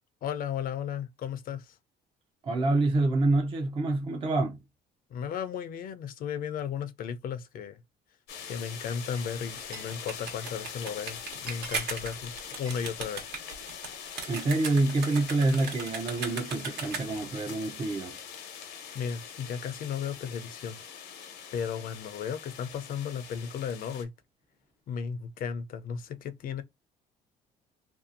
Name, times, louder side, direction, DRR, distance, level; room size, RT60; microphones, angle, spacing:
voice 1, 0.2-1.8 5.1-7.8 8.5-13.4 18.9-20.8 21.5-24.1 24.9-26.6, left 7 dB, 60° left, 0.5 m, -35 dB
voice 2, 2.4-4.6 14.3-18.2, right 2 dB, 30° right, 0.5 m, -27 dB
sound 1, 8.3-24.0, left 8 dB, 85° left, 0.8 m, -43 dB
Glass, 9.2-10.0 10.3-10.7 11.1-11.2 11.4-13.6 14.0-14.8, right 2 dB, 60° right, 1.0 m, -50 dB
sound 2, 9.4-17.3, right 5 dB, 80° right, 1.1 m, -38 dB
2.6 x 2.3 x 2.5 m
cardioid pair, 110°, 17 cm